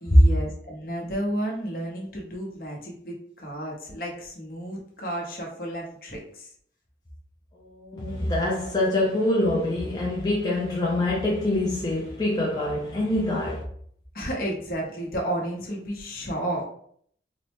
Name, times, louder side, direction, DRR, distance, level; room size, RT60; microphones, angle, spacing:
voice 1, 0.0-6.5 14.1-16.6, right 1 dB, 50° left, 0.9 m, -32 dB
voice 2, 7.6-13.6, left 1 dB, 20° left, 0.5 m, -24 dB
4.1 x 2.1 x 2.9 m
head